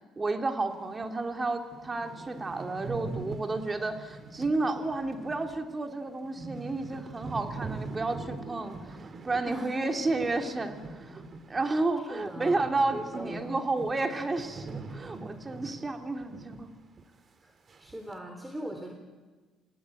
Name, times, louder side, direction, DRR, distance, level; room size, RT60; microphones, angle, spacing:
voice 1, 0.2-8.8 9.2-11.2 11.5-16.7, right 3 dB, 25° right, 4 dB, 3.3 m, -31 dB
sound 1, 1.0-1.1 1.5-1.6 1.7-12.0 12.2-16.7 17.0-17.1 17.7-18.1, right 3 dB, 40° right, 2.4 m, -43 dB
voice 2, 9.4-9.8 12.0-13.6 17.4-17.5 17.8-18.9, equal, 10° right, 4 dB, 3.5 m, -40 dB
29.0 x 17.0 x 9.5 m, 1.4 s
supercardioid pair, 70°, 0 cm